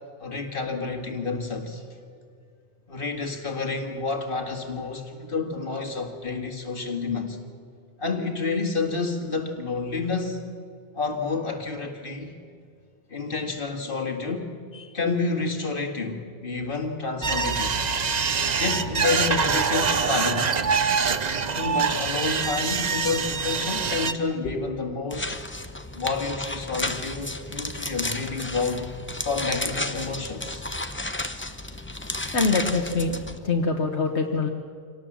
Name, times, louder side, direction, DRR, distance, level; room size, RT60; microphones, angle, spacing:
voice 1, 0.2-1.8 2.9-7.4 8.0-10.4 10.9-12.4 13.1-14.5 14.9-17.8 18.6-20.5 21.5-25.4 25.9-28.9 29.2-30.6, left 4 dB, 55° left, 3 dB, 2.2 m, -29 dB
sound 1, 17.2-24.1, right 5 dB, 40° right, 0.9 m, -24 dB
sound 2, 25.1-33.4, left 2 dB, 10° left, 0.8 m, -33 dB
voice 2, 32.0-34.5, left 3 dB, 80° left, 3 dB, 1.6 m, -25 dB
26.0 x 18.5 x 7.4 m, 2.2 s
omnidirectional pair, 1.1 m